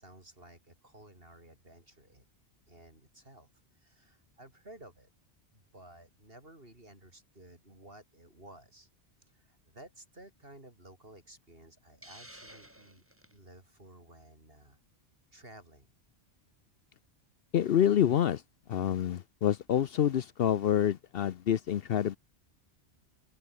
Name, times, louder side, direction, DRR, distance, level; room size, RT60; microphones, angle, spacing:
voice 1, 0.0-2.2 2.7-3.5 3.8-5.1 5.5-8.9 9.3-13.0 13.3-14.8 15.3-15.9, right 1 dB, 55° right, 6.8 m, -54 dB
Hiss, 12.0-13.4, equal, 10° right, 4.1 m, -52 dB
voice 2, 17.5-18.4 18.7-22.2, left 10 dB, 60° left, 0.8 m, -27 dB
open air
omnidirectional pair, 1.2 m